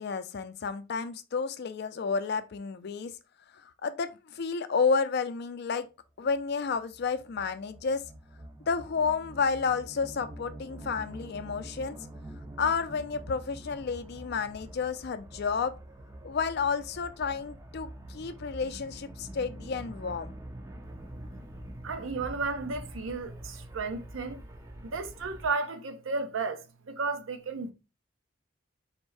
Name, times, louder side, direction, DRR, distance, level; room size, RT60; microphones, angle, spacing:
voice 1, 0.0-3.2 3.6-5.9 6.2-8.1 8.7-12.0 12.6-15.8 16.2-20.3, left 5 dB, 55° left, 0.4 m, -31 dB
sound 1, 6.2-25.5, right 1 dB, 15° right, 0.4 m, -46 dB
voice 2, 21.8-24.4 24.8-27.7, right 4 dB, 80° right, 0.6 m, -33 dB
4.3 x 2.7 x 3.1 m
head